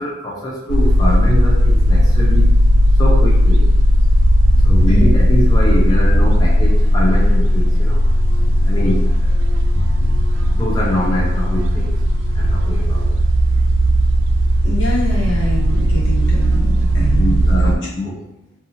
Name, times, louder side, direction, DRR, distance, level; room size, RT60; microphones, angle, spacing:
voice 1, 0.0-2.5 3.0-3.7 4.6-8.0 8.6-9.3 10.5-11.9 12.3-13.1 17.1-18.2, left 1 dB, 20° left, -4 dB, 0.4 m, -23 dB
sound 1, 0.7-17.8, equal, 85° right, 0.3 m, -15 dB
voice 2, 14.6-17.7, equal, 85° left, -5 dB, 1.0 m, -25 dB
2.8 x 2.4 x 2.8 m, 0.85 s
head